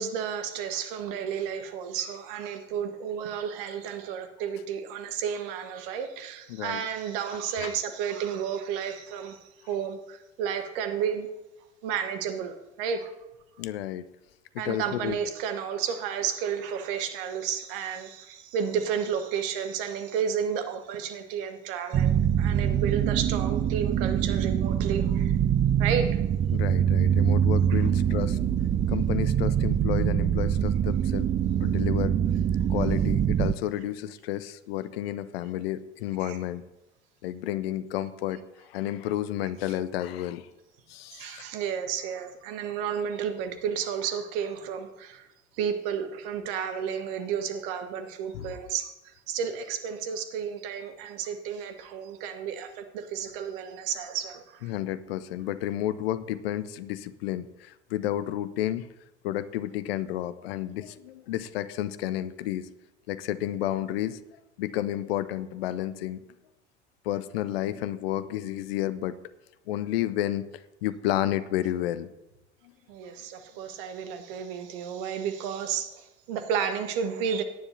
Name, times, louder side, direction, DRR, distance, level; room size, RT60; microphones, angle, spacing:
voice 1, 0.0-9.4 9.7-11.3 11.8-13.1 14.6-25.3 25.8-26.2 27.7-27.9 32.6-32.7 36.2-36.4 41.1-45.3 45.6-48.9 49.3-54.7 72.9-77.4, right 7 dB, 55° right, 8 dB, 1.4 m, -32 dB
voice 2, 6.5-6.8 7.6-7.7 13.6-14.0 14.5-15.2 26.5-28.4 28.9-31.3 31.6-32.1 32.7-36.6 37.2-40.5 40.9-41.5 48.3-48.5 54.6-58.9 59.2-62.7 63.1-64.2 64.6-66.2 67.0-69.2 69.7-72.1, left 13 dB, 60° left, 15 dB, 0.7 m, -31 dB
sound 1, 21.9-33.5, right 9 dB, 20° right, 0.4 m, -24 dB
17.5 x 9.8 x 2.8 m, 0.96 s
figure-of-eight pair, 70°, 34 cm